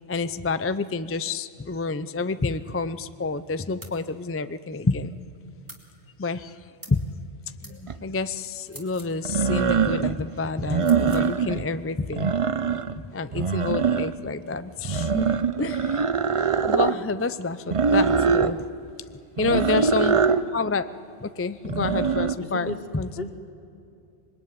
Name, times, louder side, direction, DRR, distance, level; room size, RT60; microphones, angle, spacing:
voice 1, 0.1-5.1 6.2-6.6 6.9-7.0 7.6-12.3 13.0-15.3 15.6-16.1 16.7-18.6 19.4-20.2 20.5-20.9 21.2-23.1, left 3 dB, 20° left, 12 dB, 0.3 m, -28 dB
sound 1, 3.8-4.0 5.7-5.9 6.8-7.0 7.6-7.8 8.6-9.2 10.8-11.3, right 1 dB, 15° right, 2.9 m, -45 dB
sound 2, 7.9-8.0 9.2-10.2 10.6-11.7 12.0-13.0 13.3-14.3 14.8-17.0 17.7-18.5 19.4-20.4 21.6-22.3, right 5 dB, 35° right, 0.6 m, -23 dB
voice 2, 19.5-19.9 22.4-22.8 23.2-23.3, left 2 dB, 55° left, 5 dB, 2.3 m, -32 dB
26.0 x 21.5 x 9.6 m, 2.6 s
omnidirectional pair, 1.2 m